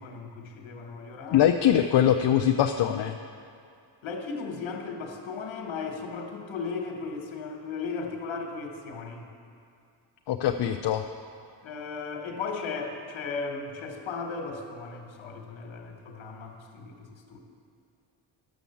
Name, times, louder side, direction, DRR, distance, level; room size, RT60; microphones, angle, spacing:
voice 1, 0.0-1.5 4.0-9.3 11.6-17.4, left 4 dB, 90° left, 2 dB, 1.4 m, -36 dB
voice 2, 1.3-3.2 10.3-11.0, left 10 dB, 65° left, 6 dB, 0.5 m, -22 dB
11.0 x 7.0 x 7.0 m, 2.4 s
cardioid pair, 100°, 46 cm